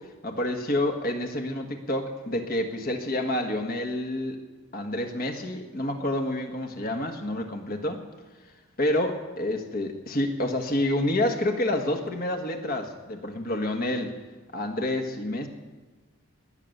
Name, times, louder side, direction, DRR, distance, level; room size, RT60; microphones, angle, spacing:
voice 1, 0.2-4.4 4.7-8.0 8.8-14.1 14.5-15.5, left 1 dB, 40° left, 5 dB, 1.5 m, -28 dB
20.0 x 6.9 x 9.2 m, 1.3 s
head